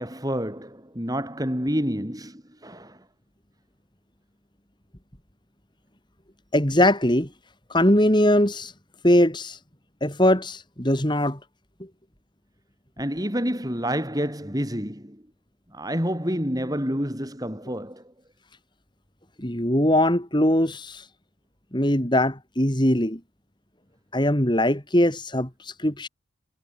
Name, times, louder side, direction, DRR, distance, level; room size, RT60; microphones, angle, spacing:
voice 1, 0.0-3.0 13.0-15.2 15.7-18.0, equal, 20° right, 7.3 m, -28 dB
voice 2, 6.5-7.3 7.7-8.7 9.0-9.6 10.0-11.4 19.4-21.0 21.7-23.2 24.1-26.1, left 1 dB, 20° left, 3.4 m, -21 dB
head